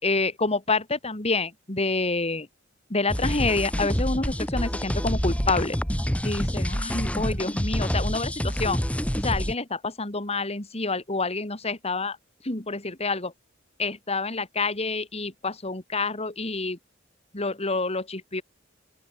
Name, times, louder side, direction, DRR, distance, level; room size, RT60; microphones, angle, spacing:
voice 1, 0.0-2.5 2.9-5.8 6.2-8.8 9.2-12.2 12.4-13.3 13.8-16.8 17.3-18.4, left 3 dB, 30° left, 2.9 m, -28 dB
sound 1, 3.1-9.5, equal, 5° left, 2.4 m, -27 dB
open air
head